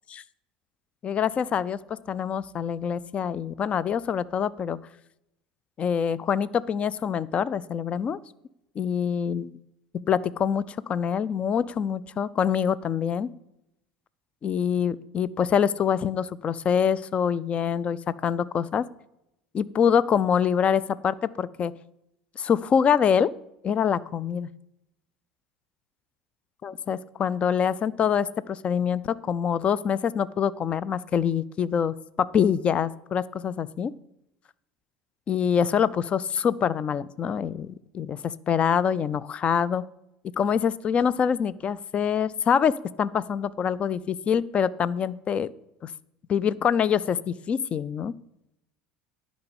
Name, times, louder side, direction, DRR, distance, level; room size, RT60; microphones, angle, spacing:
voice 1, 1.0-4.8 5.8-8.2 8.8-9.5 9.9-13.3 14.4-18.9 19.5-21.7 22.4-23.3 23.6-24.5 26.6-33.9 35.3-39.9 40.4-45.5 45.8-45.9 46.3-48.1, left 7 dB, 35° left, 19 dB, 0.4 m, -25 dB
10.5 x 5.2 x 7.2 m, 0.84 s
hypercardioid pair, 70°, 3 cm